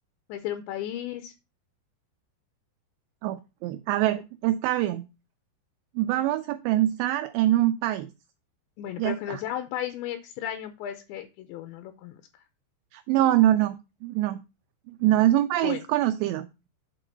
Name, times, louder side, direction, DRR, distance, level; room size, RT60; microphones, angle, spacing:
voice 1, 0.3-1.3 8.8-12.2 15.6-15.8, left 11 dB, 80° left, 8 dB, 2.8 m, -34 dB
voice 2, 3.2-5.1 6.0-8.1 9.0-9.4 12.9-14.4 14.9-16.5, right 13 dB, 85° right, 9 dB, 2.4 m, -24 dB
8.4 x 3.8 x 6.6 m, 0.28 s
omnidirectional pair, 5.5 m